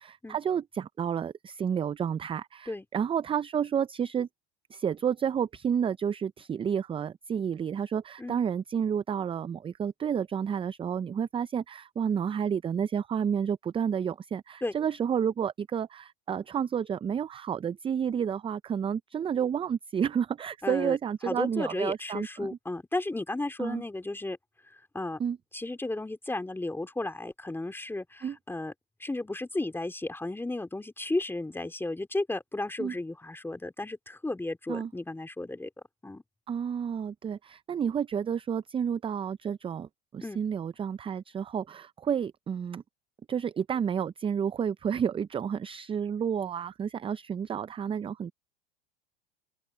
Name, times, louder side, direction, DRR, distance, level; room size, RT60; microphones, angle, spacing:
voice 1, 0.3-4.3 4.7-22.5 23.6-23.8 25.2-25.4 28.2-28.4 32.8-32.9 34.7-34.9 36.5-42.8 43.3-48.3, right 8 dB, 20° right, 0.5 m, -30 dB
voice 2, 20.6-21.0 21.2-24.4 24.7-25.2 25.5-28.7 29.0-35.7 36.0-36.2 40.2-40.4, left 2 dB, 5° left, 3.4 m, -34 dB
open air
hypercardioid pair, 100°, 29 cm